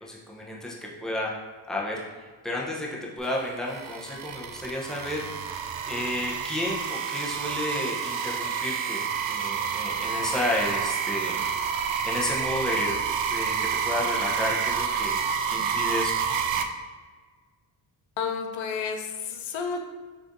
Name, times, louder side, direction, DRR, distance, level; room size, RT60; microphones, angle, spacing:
voice 1, 0.0-1.3 1.7-2.0 2.4-2.9 3.2-5.2 5.9-9.0 9.3-11.4 12.0-13.6 13.8-15.2 15.5-16.2, left 1 dB, ahead, -3 dB, 0.8 m, -31 dB
sound 1, 3.2-16.6, right 7 dB, 75° right, 0.6 m, -29 dB
voice 2, 18.2-19.8, left 6 dB, 75° left, 3 dB, 0.7 m, -31 dB
6.2 x 3.3 x 2.6 m, 1.4 s
cardioid pair, 105°, 46 cm